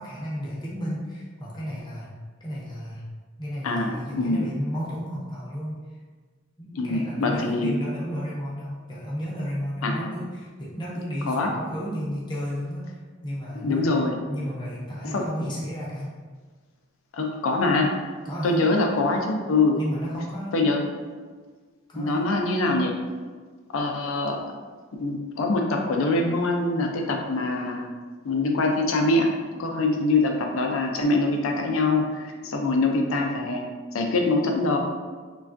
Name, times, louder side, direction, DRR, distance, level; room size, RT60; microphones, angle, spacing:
voice 1, 0.0-2.1 2.4-3.0 3.4-5.8 6.6-16.1 18.2-18.6 19.7-20.6 21.9-22.3, equal, 20° left, -6 dB, 0.6 m, -33 dB
voice 2, 3.6-4.5 6.7-7.8 9.8-10.1 11.3-11.5 13.6-14.2 15.1-15.3 17.1-17.9 18.4-19.8 20.5-20.8 22.0-23.0 23.7-24.4 25.0-27.9 28.2-33.6 33.9-34.8, left 2 dB, 75° left, 3 dB, 0.4 m, -24 dB
3.2 x 2.3 x 2.5 m, 1.4 s
head